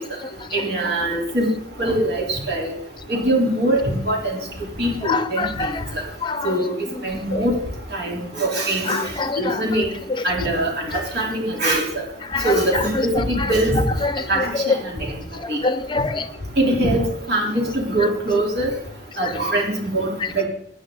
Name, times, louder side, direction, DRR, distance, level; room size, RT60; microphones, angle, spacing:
voice 1, 0.0-0.6 5.0-6.7 6.9-7.5 8.8-9.6 10.1-10.2 12.2-14.7 15.3-16.3 18.0-18.1 19.2-19.3 20.2-20.3, left 3 dB, 25° left, 11 dB, 0.8 m, -26 dB
voice 2, 0.5-1.5 1.8-2.7 3.1-4.4 4.8-5.7 6.4-6.7 7.0-7.5 7.9-9.0 9.4-9.9 10.2-11.8 12.4-13.8 14.3-14.9 15.5-15.6 16.6-17.0 17.3-18.7 19.2-20.4, right 1 dB, 60° right, -2 dB, 4.1 m, -22 dB
21.0 x 9.6 x 4.1 m, 0.72 s
head